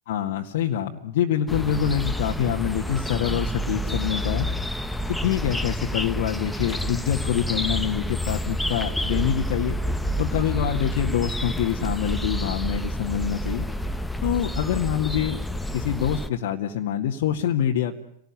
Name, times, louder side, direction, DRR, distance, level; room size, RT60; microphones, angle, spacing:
voice 1, 0.1-4.5 5.1-9.8 10.2-13.7 14.2-15.4 15.7-18.0, left 10 dB, 65° left, 0 dB, 2.0 m, -25 dB
sound 1, 1.5-16.3, equal, 5° left, 1.5 m, -28 dB
29.5 x 19.0 x 9.8 m, 0.71 s
hypercardioid pair, 95°, 0 cm